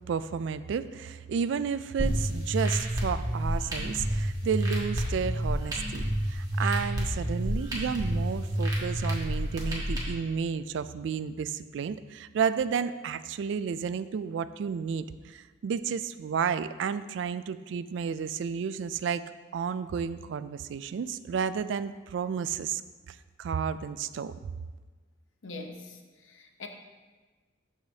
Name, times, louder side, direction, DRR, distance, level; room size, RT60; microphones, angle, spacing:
voice 1, 0.1-19.2 19.5-22.8 23.1-24.3, right 6 dB, 65° right, 14 dB, 0.3 m, -32 dB
sound 1, 2.0-10.0, equal, 20° right, 1.4 m, -29 dB
voice 2, 25.4-26.7, left 3 dB, 80° left, 4 dB, 0.8 m, -43 dB
13.0 x 4.9 x 2.8 m, 1.3 s
head